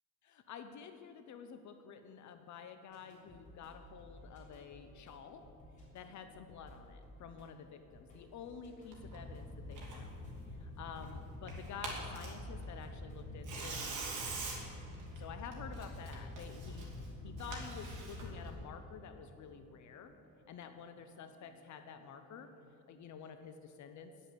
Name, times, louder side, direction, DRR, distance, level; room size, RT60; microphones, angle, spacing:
voice 1, 0.2-5.4 5.9-10.2 10.5-14.3 15.2-20.1 20.5-22.5 22.9-24.1, left 7 dB, 55° left, 8 dB, 0.7 m, -50 dB
sound 1, 2.9-22.6, equal, 20° left, 3.3 m, -59 dB
Tearing, 8.9-18.5, right 1 dB, 60° right, 2.7 m, -44 dB
10.0 x 7.7 x 7.9 m, 2.6 s
cardioid pair, 145°, 34 cm